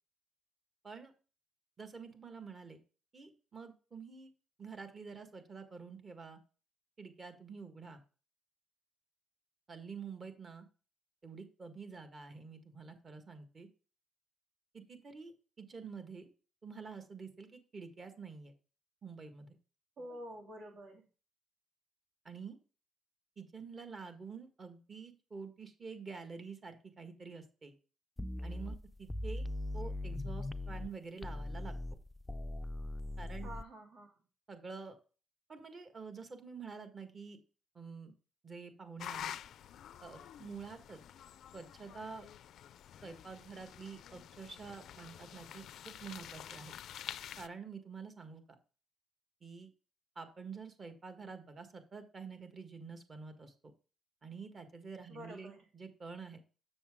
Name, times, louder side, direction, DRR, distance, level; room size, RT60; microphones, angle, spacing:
voice 1, 1.8-2.8 3.1-4.3 4.6-6.4 7.0-8.0 9.7-10.6 11.2-13.7 14.7-16.3 16.6-18.5 19.0-19.6 22.2-22.6 23.4-27.7 28.4-29.5 29.7-31.7 33.2-33.5 34.5-35.0 35.5-37.4 37.7-38.1 38.4-39.3 40.0-41.0 41.5-42.3 43.0-46.8 47.4-48.6 49.4-49.7 50.1-53.5 54.2-56.5, right 5 dB, 40° right, 8 dB, 1.6 m, -48 dB
voice 2, 20.0-21.0 33.4-34.1 55.1-55.6, equal, 70° right, 2 dB, 2.6 m, -48 dB
sound 1, 28.2-30.9 31.2-33.6, left 1 dB, 10° left, 0.4 m, -40 dB
sound 2, 39.0-47.5, left 10 dB, 75° left, 0.4 m, -48 dB
7.1 x 6.7 x 3.7 m, 0.36 s
cardioid pair, 90°, 0 cm